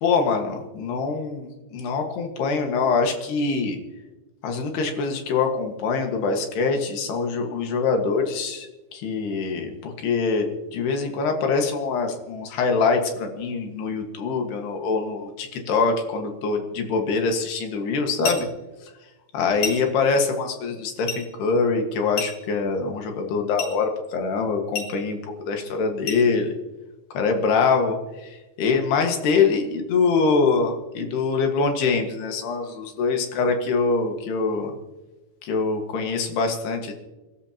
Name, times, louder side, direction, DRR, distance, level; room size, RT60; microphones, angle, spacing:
voice 1, 0.0-3.8 4.4-18.5 19.3-26.5 27.2-34.7 35.4-36.9, left 4 dB, 65° left, 3 dB, 3.4 m, -24 dB
sound 1, 18.2-18.6 19.6-20.0 21.1-21.3 22.2-22.6 23.6-23.8 24.7-25.0 26.1-26.3, left 5 dB, 40° left, 4.4 m, -31 dB
29.0 x 13.0 x 2.9 m, 1.1 s
omnidirectional pair, 5.6 m